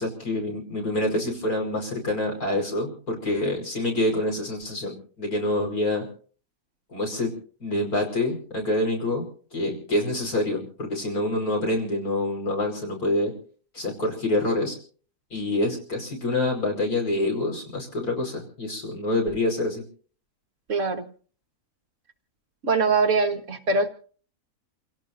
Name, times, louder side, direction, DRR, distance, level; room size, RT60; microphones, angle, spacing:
voice 1, 0.0-6.1 6.9-7.3 7.6-9.2 9.5-13.3 13.7-14.7 15.3-19.8, left 1 dB, 80° left, 1 dB, 5.4 m, -26 dB
voice 2, 20.7-21.1 22.6-23.9, right 4 dB, 55° right, 6 dB, 1.7 m, -22 dB
28.5 x 17.0 x 2.6 m, 0.43 s
omnidirectional pair, 1.6 m